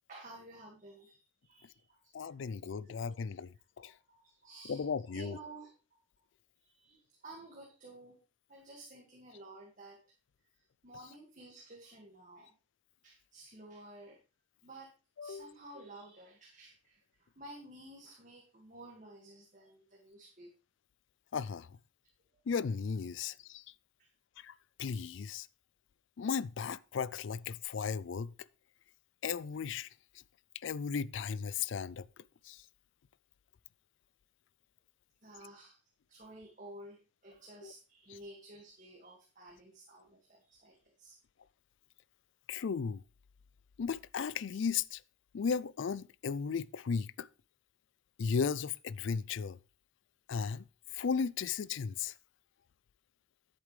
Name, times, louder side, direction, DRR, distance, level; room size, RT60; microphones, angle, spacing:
voice 1, 0.1-2.4 2.8-2.9 3.8-6.0 6.6-8.2 8.5-10.0 10.8-12.5 13.0-14.2 14.6-14.9 15.2-20.5 24.0-24.1 35.2-35.8 36.1-41.2, right 2 dB, 40° right, 1.9 m, -53 dB
voice 2, 2.1-3.5 3.8-3.9 4.7-5.4 15.2-15.5 21.3-21.7 22.5-23.6 24.4-24.5 24.8-25.5 26.2-28.3 29.2-29.9 30.6-32.1 32.4-32.6 37.6-37.7 42.5-43.0 43.8-45.0 45.3-47.3 48.2-49.6 50.3-50.6 50.9-52.1, left 6 dB, 65° left, 0.4 m, -35 dB
10.5 x 8.4 x 3.2 m
head